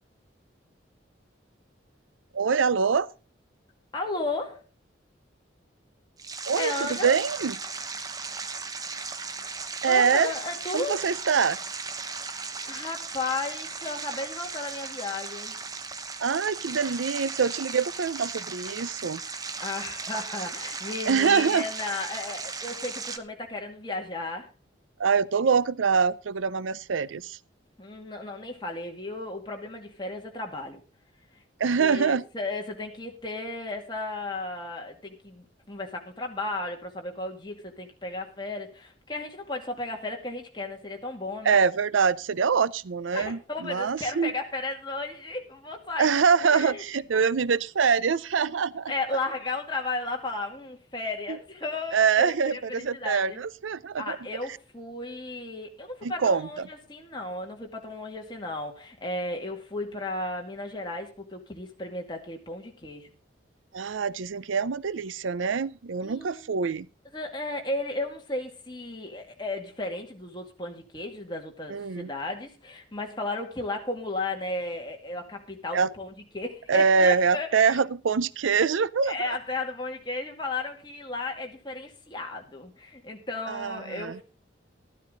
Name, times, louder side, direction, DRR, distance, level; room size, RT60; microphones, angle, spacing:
voice 1, 2.3-3.1 6.5-7.5 9.8-10.3 10.7-11.6 16.2-19.2 21.1-21.7 25.0-27.4 31.6-32.2 41.4-44.3 46.0-48.9 51.3-51.4 51.9-54.2 56.0-56.7 63.7-66.9 71.7-72.1 75.7-75.9 76.7-79.3 83.5-84.2, right 5 dB, 85° right, 0.5 m, -24 dB
voice 2, 3.9-4.6 6.6-7.2 9.9-11.1 12.6-15.6 19.6-24.5 27.8-30.8 31.8-41.6 43.1-46.8 47.1-47.2 48.9-53.4 54.0-63.1 66.0-66.6 67.1-77.8 79.1-84.2, left 2 dB, 25° left, 2.4 m, -34 dB
sound 1, 6.2-23.2, right 4 dB, 20° right, 0.8 m, -36 dB
13.0 x 12.5 x 3.9 m
head